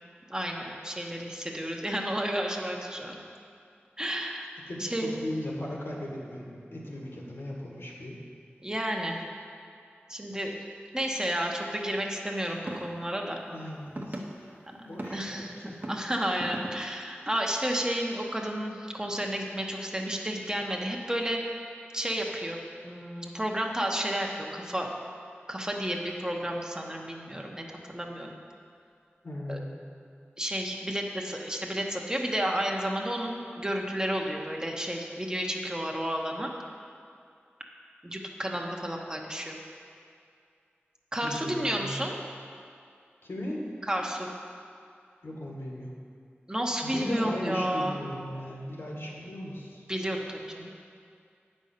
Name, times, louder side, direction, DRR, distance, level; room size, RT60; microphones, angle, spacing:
voice 1, 0.3-3.2 4.0-4.5 4.8-5.2 8.6-9.2 10.1-10.6 10.9-13.4 15.1-15.5 15.9-21.4 21.9-22.6 22.8-24.9 25.5-28.4 29.5-29.6 30.4-36.5 38.0-39.6 41.1-42.2 43.8-44.3 46.5-48.1 49.9-50.7, equal, 20° right, 0 dB, 1.0 m, -31 dB
voice 2, 4.7-8.2 13.5-15.8 29.2-29.7 41.2-42.0 43.2-43.6 45.2-45.9 46.8-49.8, left 1 dB, 75° left, -3 dB, 1.8 m, -37 dB
sound 1, 12.7-12.9 14.0-14.2 15.0-15.2 15.8-16.0 16.4-16.7, right 1 dB, 45° right, 1.0 m, -36 dB
9.0 x 5.4 x 6.6 m, 2.4 s
wide cardioid pair, 55°, 4 cm